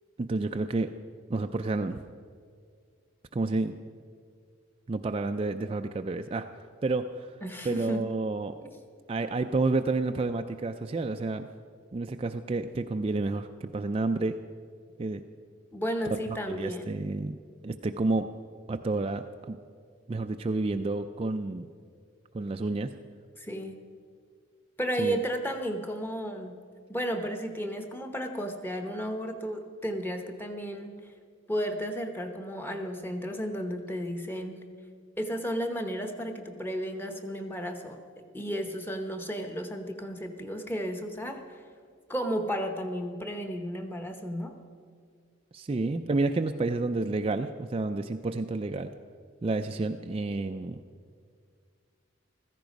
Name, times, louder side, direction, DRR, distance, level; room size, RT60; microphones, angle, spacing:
voice 1, 0.2-0.9 1.3-2.0 3.3-3.7 4.9-6.5 6.8-7.3 7.6-8.5 9.1-11.5 11.9-14.4 15.0-15.2 16.1-16.2 16.5-17.4 17.6-18.3 18.7-19.6 20.1-21.7 22.3-22.9 25.0-25.2 45.5-48.9 49.4-50.8, right 3 dB, 30° right, 6 dB, 0.3 m, -30 dB
voice 2, 7.4-8.0 8.6-8.7 15.7-16.9 23.4-23.8 24.8-26.6 26.9-31.0 31.5-34.7 35.2-38.0 38.3-41.6 42.1-44.6, equal, 10° left, 6 dB, 0.9 m, -33 dB
15.5 x 14.0 x 5.2 m, 2.1 s
head